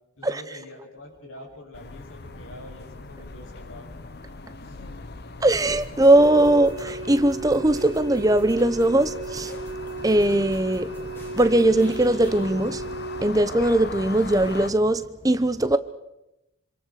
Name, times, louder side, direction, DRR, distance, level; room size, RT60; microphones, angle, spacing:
voice 1, 0.2-3.9 4.6-5.1, left 1 dB, 85° left, 7.5 m, -45 dB
sound 1, 1.7-14.7, left 3 dB, 50° left, 1.0 m, -40 dB
voice 2, 5.4-9.5 10.0-10.9 11.4-12.9 13.2-15.8, right 1 dB, 15° right, 0.8 m, -20 dB
sound 2, 5.6-12.4, equal, 10° left, 7.6 m, -48 dB
sound 3, 6.1-13.3, right 3 dB, 60° right, 1.9 m, -36 dB
27.5 x 26.5 x 4.9 m
head